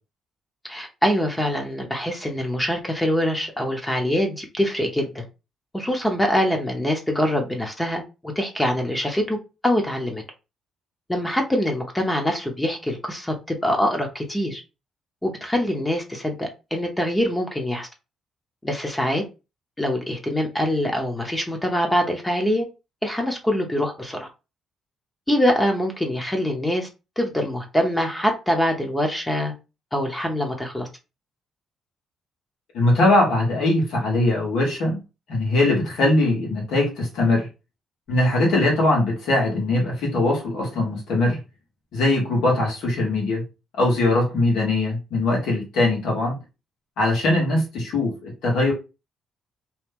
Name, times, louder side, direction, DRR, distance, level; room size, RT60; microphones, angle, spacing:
voice 1, 0.7-5.2 5.7-10.2 11.1-14.6 15.2-17.9 18.6-19.2 19.8-22.6 23.0-24.3 25.3-26.9 27.2-29.5 29.9-30.9, equal, 10° left, 0.8 m, -24 dB
voice 2, 32.7-35.0 35.3-37.5 38.1-41.4 41.9-43.4 43.8-46.4 47.0-48.7, left 2 dB, 85° left, 1.3 m, -21 dB
2.9 x 2.2 x 3.5 m
cardioid pair, 90°, 0 cm